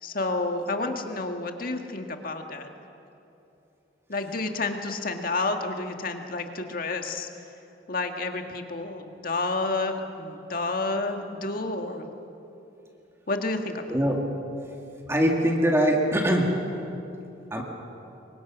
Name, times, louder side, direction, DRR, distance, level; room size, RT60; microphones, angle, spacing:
voice 1, 0.0-2.7 4.1-7.3 7.9-12.1 13.3-14.0, left 3 dB, 50° left, 4 dB, 1.8 m, -30 dB
voice 2, 15.1-16.5 17.5-17.6, equal, 15° right, 0 dB, 2.3 m, -22 dB
28.0 x 23.5 x 6.2 m, 2.9 s
head